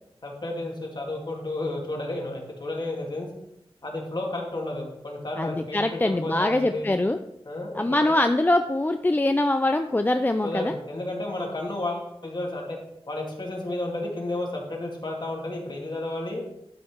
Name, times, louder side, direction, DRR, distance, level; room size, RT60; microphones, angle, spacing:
voice 1, 0.2-3.3 3.8-6.9 7.5-7.9 10.4-12.8 13.1-16.4, left 2 dB, 45° left, -1 dB, 2.4 m, -32 dB
voice 2, 5.4-7.2 7.7-10.7, left 1 dB, 20° left, 7 dB, 0.4 m, -23 dB
12.0 x 4.6 x 4.6 m, 0.83 s
wide cardioid pair, 75°, 10 cm